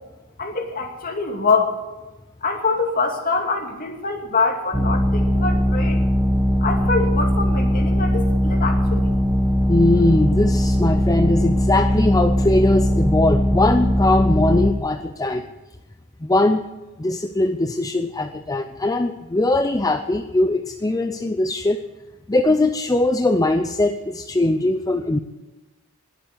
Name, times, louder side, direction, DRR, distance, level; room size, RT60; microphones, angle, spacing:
voice 1, 0.4-1.8 2.4-6.0 6.6-9.1, left 4 dB, 40° left, 3 dB, 2.5 m, -24 dB
sound 1, 4.7-14.7, equal, 5° right, 1.1 m, -19 dB
voice 2, 9.7-15.4 16.2-16.6 17.0-21.8 22.3-25.2, left 2 dB, 15° left, 7 dB, 0.6 m, -20 dB
21.0 x 8.1 x 8.3 m, 1.1 s
head